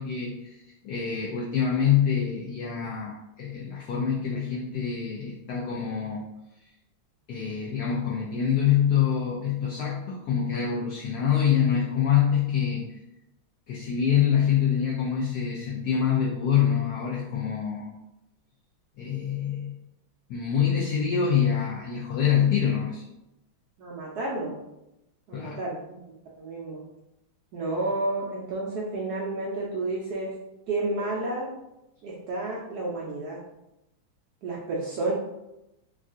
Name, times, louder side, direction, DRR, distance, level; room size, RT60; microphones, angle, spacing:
voice 1, 0.0-6.2 7.3-13.0 13.7-17.9 19.0-19.7 20.3-23.0 25.3-25.6, left 8 dB, 80° left, -3 dB, 0.8 m, -25 dB
voice 2, 23.8-24.6 25.3-26.8 27.5-30.3 30.7-31.5 32.0-33.4 34.4-35.1, right 2 dB, 80° right, -4 dB, 0.8 m, -31 dB
3.5 x 2.4 x 2.4 m, 0.91 s
omnidirectional pair, 2.2 m